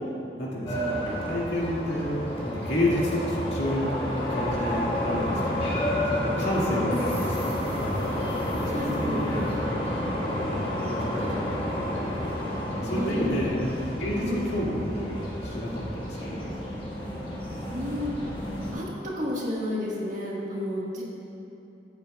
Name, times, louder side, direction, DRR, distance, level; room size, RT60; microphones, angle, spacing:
voice 1, 0.4-2.1 2.4-3.9 4.3-5.8 6.1-8.0 8.7-8.8 9.1-9.4 10.3-11.9 12.7-13.6 14.0-16.3, left 1 dB, 85° left, -6 dB, 2.0 m, -30 dB
sound 1, 0.7-18.7, equal, 30° left, 1.4 m, -30 dB
voice 2, 6.7-7.1 8.7-9.5 12.8-13.4 14.1-14.5 17.6-18.1 18.7-21.0, left 1 dB, 45° right, -4 dB, 1.5 m, -32 dB
12.5 x 8.6 x 2.3 m, 2.8 s
head